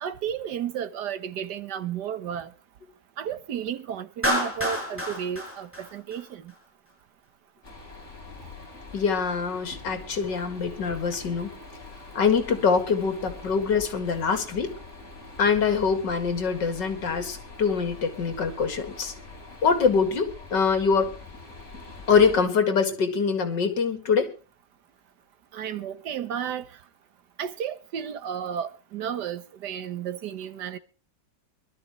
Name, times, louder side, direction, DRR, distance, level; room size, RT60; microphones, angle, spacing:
voice 1, 0.0-2.5 3.2-6.5 25.5-26.6 27.4-30.8, right 9 dB, 75° right, 1.6 m, -33 dB
Clapping, 4.2-6.5, equal, 5° right, 6.2 m, -29 dB
sound 1, 7.6-22.4, left 3 dB, 40° left, 4.4 m, -44 dB
voice 2, 8.9-11.5 12.1-14.7 15.4-19.1 19.6-21.2 22.1-24.3, left 5 dB, 80° left, 2.6 m, -24 dB
23.5 x 12.5 x 3.1 m
omnidirectional pair, 1.9 m